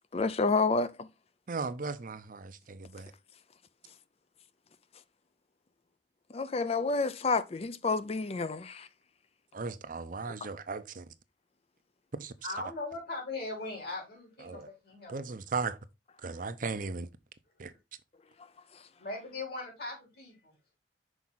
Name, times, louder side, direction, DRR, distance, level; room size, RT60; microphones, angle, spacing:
voice 1, 0.1-0.9 6.3-8.8, left 4 dB, 35° left, 0.5 m, -29 dB
voice 2, 1.5-3.1 9.5-11.1 12.2-12.3 14.4-14.7 15.1-15.8 16.2-17.1 17.6-17.7, right 4 dB, 50° right, 0.6 m, -37 dB
voice 3, 12.4-15.2 17.7-17.8 19.0-20.5, left 2 dB, 60° left, 3.6 m, -39 dB
6.1 x 4.8 x 3.9 m
head